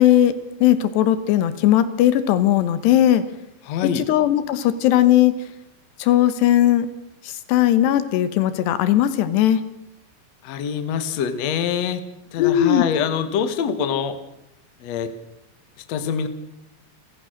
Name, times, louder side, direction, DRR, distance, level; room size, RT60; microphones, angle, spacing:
voice 1, 0.0-3.2 3.8-5.3 6.0-6.9 7.2-9.7 12.4-12.8, left 12 dB, 80° left, 13 dB, 3.2 m, -18 dB
voice 2, 3.7-4.1 10.4-12.0 12.3-14.2 14.8-15.1 15.9-16.3, left 7 dB, 60° left, 10 dB, 1.9 m, -24 dB
29.5 x 14.5 x 6.5 m, 0.87 s
omnidirectional pair, 4.8 m